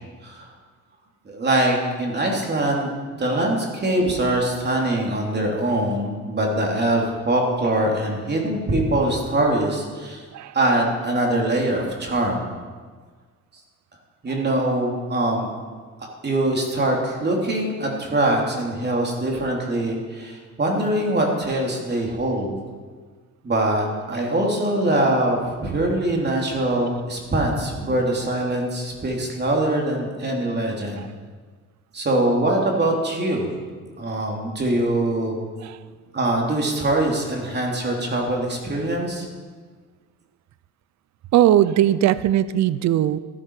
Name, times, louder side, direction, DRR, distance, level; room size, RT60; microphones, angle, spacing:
voice 1, 0.2-0.5 1.2-10.2 10.5-12.4 14.2-15.5 16.2-22.5 23.4-31.0 31.9-33.5 34.0-35.4 36.1-39.3, right 1 dB, 35° right, 0 dB, 3.2 m, -23 dB
voice 2, 41.3-43.2, right 12 dB, 65° right, 16 dB, 0.5 m, -19 dB
13.5 x 12.0 x 4.9 m, 1.5 s
cardioid pair, 90°, 30 cm